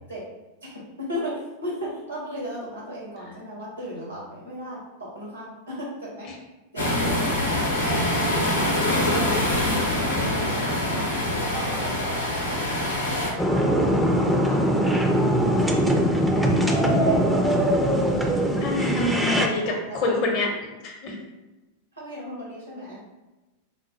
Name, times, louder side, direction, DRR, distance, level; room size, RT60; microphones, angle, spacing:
voice 1, 0.6-6.3 6.7-7.3 7.8-9.9 10.1-11.1 11.4-12.5 13.0-14.6 16.7-17.8 19.5-20.1 21.9-23.0, equal, 90° right, -5 dB, 0.9 m, -36 dB
sound 1, 6.8-13.3, left 1 dB, 75° left, 0.7 m, -24 dB
sound 2, 13.4-19.5, equal, ahead, 0.4 m, -21 dB
voice 2, 18.6-20.5 20.8-21.2, left 2 dB, 40° left, 1 dB, 0.7 m, -26 dB
4.1 x 2.0 x 3.1 m, 1.1 s
figure-of-eight pair, 90°, 0 cm